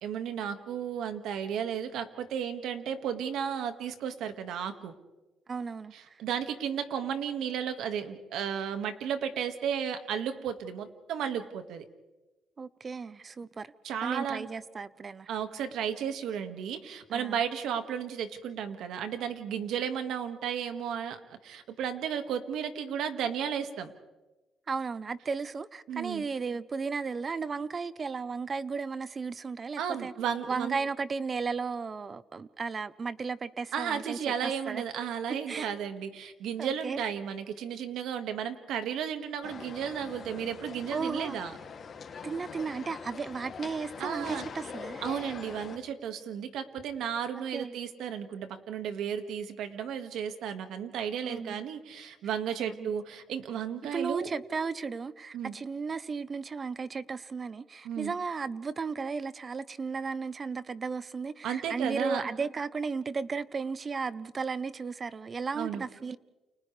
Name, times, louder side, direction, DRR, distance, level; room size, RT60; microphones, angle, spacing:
voice 1, 0.0-4.9 5.9-11.8 13.8-14.5 15.3-23.9 25.9-26.3 29.8-30.8 33.7-41.5 44.0-44.4 45.0-54.3 55.3-55.5 57.8-58.2 61.4-62.2 65.6-65.8, right 8 dB, 85° right, 1.9 m, -34 dB
voice 2, 5.5-5.9 12.6-13.7 14.0-15.3 17.1-17.4 24.7-30.1 30.5-34.8 35.5-35.7 36.6-37.0 40.9-41.4 42.2-45.0 47.5-47.8 51.2-51.6 52.6-52.9 53.9-66.2, right 5 dB, 40° right, 0.8 m, -35 dB
sound 1, 39.4-45.8, left 6 dB, 50° left, 2.7 m, -43 dB
29.5 x 29.5 x 3.4 m
cardioid pair, 90°, 0 cm